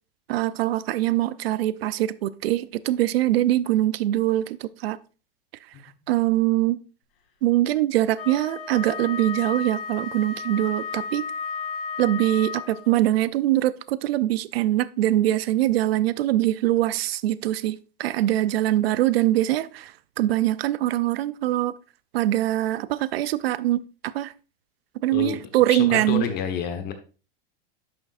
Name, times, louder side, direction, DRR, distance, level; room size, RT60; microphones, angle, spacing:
voice 1, 0.3-5.0 6.1-6.8 7.4-11.3 12.0-21.7 22.1-24.3 25.0-26.2, right 14 dB, 85° right, 0.6 m, -23 dB
Wind instrument woodwind instrument, 8.1-13.0, left 5 dB, 85° left, 2.5 m, -33 dB
voice 2, 25.1-25.4 25.7-26.9, left 7 dB, 35° left, 1.2 m, -29 dB
11.0 x 6.6 x 2.5 m
supercardioid pair, 140°, 29 cm